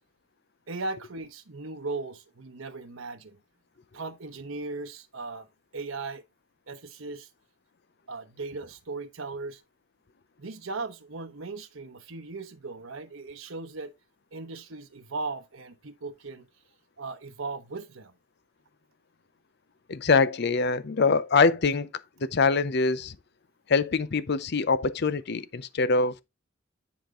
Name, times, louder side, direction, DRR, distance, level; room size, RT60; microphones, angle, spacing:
voice 1, 0.7-3.4 3.9-5.5 5.7-6.2 6.7-7.3 8.1-9.6 10.4-13.9 14.3-16.5 17.0-18.1, right 3 dB, 85° right, 1.0 m, -37 dB
voice 2, 19.9-21.9 22.2-23.2 23.7-26.2, left 4 dB, 55° left, 0.6 m, -24 dB
10.5 x 5.1 x 3.7 m
head